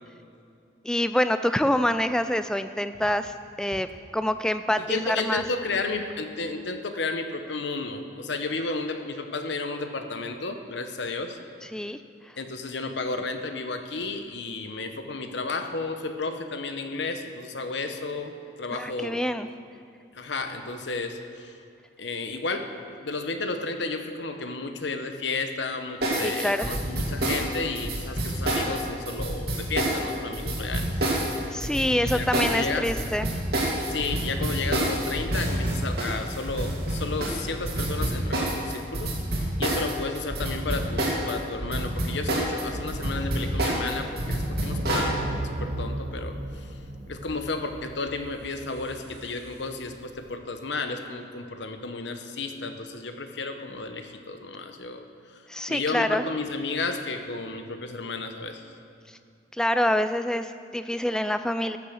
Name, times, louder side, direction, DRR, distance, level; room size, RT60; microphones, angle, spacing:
voice 1, 0.8-3.9 4.1-5.4 11.7-12.0 18.7-19.5 26.1-26.7 31.5-33.3 55.5-56.2 59.5-61.8, left 1 dB, 5° left, 10 dB, 0.3 m, -26 dB
voice 2, 4.8-11.4 12.4-19.2 20.1-21.6 22.0-30.9 32.0-32.9 33.9-45.3 45.6-46.7 47.1-55.4 55.7-58.6, left 3 dB, 75° left, 7 dB, 0.9 m, -32 dB
sound 1, 26.0-41.3 41.6-45.1, right 1 dB, 55° right, 2.4 m, -27 dB
sound 2, 42.7-50.2, right 1 dB, 75° right, 1.1 m, -36 dB
14.0 x 6.9 x 6.4 m, 2.5 s
head